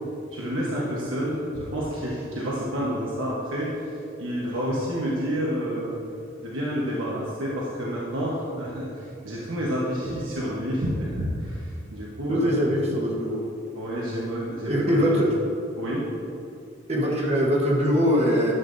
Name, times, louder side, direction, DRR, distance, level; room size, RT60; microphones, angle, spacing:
voice 1, 0.3-3.9 4.2-5.9 6.4-12.6 13.7-15.2 15.8-16.1, equal, 80° right, -6 dB, 1.2 m, -29 dB
voice 2, 12.3-13.4 14.7-15.3 16.9-18.5, equal, 30° right, -3 dB, 1.1 m, -22 dB
11.0 x 8.0 x 2.6 m, 2.6 s
head